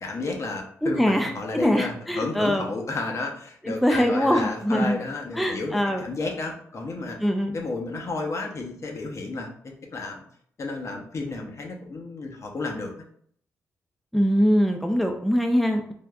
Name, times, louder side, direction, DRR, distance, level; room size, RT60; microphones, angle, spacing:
voice 1, 0.0-7.2 7.5-10.2 10.6-12.9, left 3 dB, 50° left, 2 dB, 0.7 m, -32 dB
voice 2, 0.8-1.3 1.6-2.6 3.6-4.9 5.3-6.0 7.2-7.6 14.1-15.9, equal, ahead, 3 dB, 0.4 m, -22 dB
3.4 x 2.5 x 2.3 m, 0.63 s
supercardioid pair, 50°, 6 cm